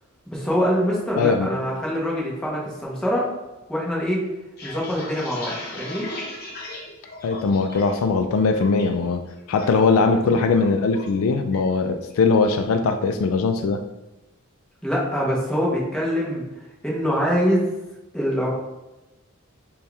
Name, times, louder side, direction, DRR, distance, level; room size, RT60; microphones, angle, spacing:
voice 1, 0.3-3.3 3.7-4.2 4.6-6.1 10.3-10.4 14.8-16.4 16.8-17.6 18.1-18.5, equal, 5° left, -5 dB, 0.9 m, -24 dB
voice 2, 1.2-1.5 7.2-9.2 9.5-13.8, left 4 dB, 70° left, 6 dB, 0.3 m, -20 dB
sound 1, 4.3-8.0 8.3-8.8 9.2-9.7 9.9-11.2 11.5-11.8 12.1-12.6, left 2 dB, 50° left, 0.8 m, -37 dB
4.2 x 2.3 x 3.3 m, 1.0 s
head